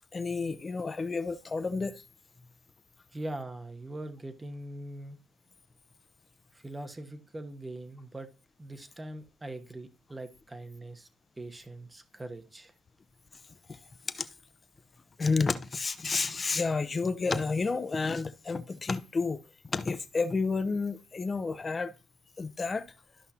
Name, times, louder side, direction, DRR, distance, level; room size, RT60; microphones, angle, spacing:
voice 1, 0.1-2.0 13.7-13.8 14.1-14.3 15.2-19.4 19.7-21.9 22.4-22.9, left 4 dB, 30° left, 0.8 m, -30 dB
voice 2, 3.1-5.2 6.5-8.3 8.6-11.1 11.4-12.7, right 1 dB, 20° right, 1.1 m, -42 dB
13.0 x 5.6 x 2.9 m
cardioid pair, 90°, 0 cm